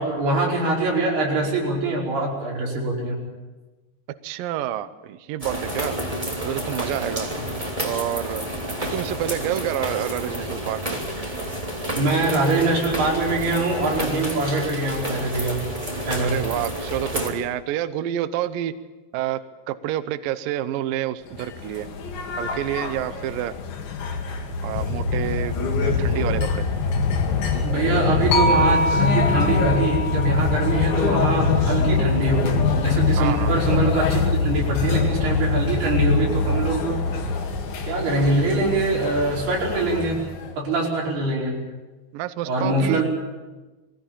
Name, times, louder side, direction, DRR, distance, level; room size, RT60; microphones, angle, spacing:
voice 1, 0.0-3.2 12.0-15.7 16.1-16.4 27.6-37.0 37.8-40.3 40.6-41.6 42.5-43.0, right 2 dB, 60° right, -3 dB, 7.1 m, -23 dB
voice 2, 4.2-6.0 6.4-7.3 7.8-8.4 8.8-11.0 16.2-18.7 19.1-19.4 19.7-21.9 22.4-23.5 24.6-26.7 33.2-33.5 42.1-43.0, right 12 dB, 90° right, 12 dB, 1.9 m, -28 dB
sound 1, 5.4-17.3, equal, 10° right, 2.4 m, -30 dB
sound 2, 21.3-40.5, left 4 dB, 60° left, 3.7 m, -23 dB
sound 3, 28.3-32.5, equal, 85° left, 3.9 m, -26 dB
23.0 x 16.0 x 8.9 m, 1.2 s
omnidirectional pair, 5.3 m